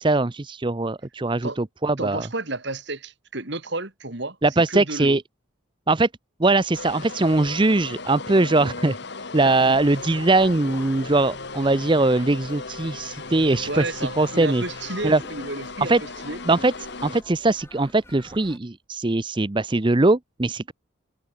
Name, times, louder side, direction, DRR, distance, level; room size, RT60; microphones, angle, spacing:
voice 1, 0.0-2.3 4.4-5.2 5.9-6.1 6.4-9.0 9.3-14.6 15.0-15.2 15.8-16.0 16.5-16.7 17.0-20.7, right 2 dB, 25° right, 0.6 m, -21 dB
voice 2, 2.0-4.4 4.7-5.2 9.4-9.8 13.7-16.4, right 2 dB, 55° right, 3.0 m, -32 dB
sound 1, 6.7-17.2, left 3 dB, 55° left, 1.5 m, -37 dB
sound 2, 9.5-18.6, left 1 dB, 10° left, 5.7 m, -49 dB
head